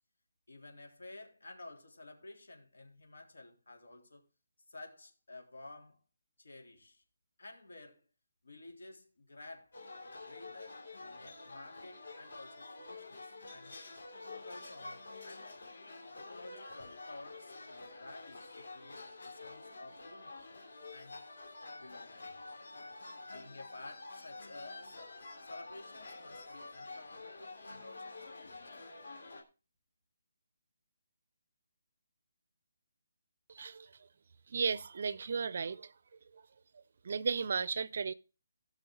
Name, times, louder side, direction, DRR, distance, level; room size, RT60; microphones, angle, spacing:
voice 1, 0.5-4.2 4.7-6.0 6.4-7.0 7.4-8.0 8.4-9.7 10.1-13.8 14.3-15.5 16.1-20.5 20.9-21.2 21.8-22.3 23.3-25.1 25.4-28.9, left 2 dB, 85° left, 3.4 m, -53 dB
sound 1, 9.7-29.4, left 3 dB, 55° left, 2.7 m, -48 dB
voice 2, 33.5-33.9 34.5-35.9 36.3-36.4 37.0-38.1, right 5 dB, 40° right, 0.4 m, -35 dB
17.0 x 6.3 x 3.8 m
hypercardioid pair, 180°, 0 cm